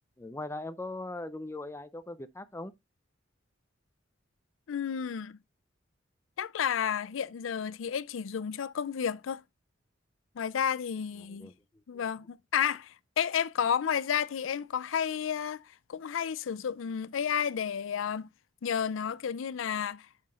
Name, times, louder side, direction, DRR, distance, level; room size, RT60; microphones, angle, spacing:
voice 1, 0.2-2.7 11.3-11.5 11.9-12.0, left 2 dB, 15° left, 0.5 m, -40 dB
voice 2, 4.7-5.4 6.4-9.4 10.4-11.5 11.9-18.3 18.6-20.1, left 8 dB, 90° left, 0.4 m, -31 dB
11.5 x 5.9 x 2.4 m
head